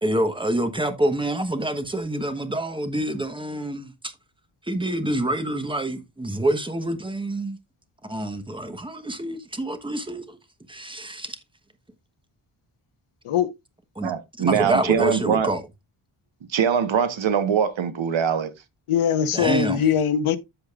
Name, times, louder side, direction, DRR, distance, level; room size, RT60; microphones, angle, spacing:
voice 1, 0.0-4.1 4.7-7.6 8.0-10.4 10.7-11.4 14.0-14.1 14.4-15.6 19.3-19.8, right 1 dB, 10° right, 1.2 m, -27 dB
voice 2, 14.0-15.5 16.5-18.5, right 7 dB, 65° right, 1.3 m, -22 dB
voice 3, 18.9-20.4, left 8 dB, 80° left, 1.0 m, -21 dB
13.5 x 5.1 x 2.4 m
wide cardioid pair, 145°, 50 cm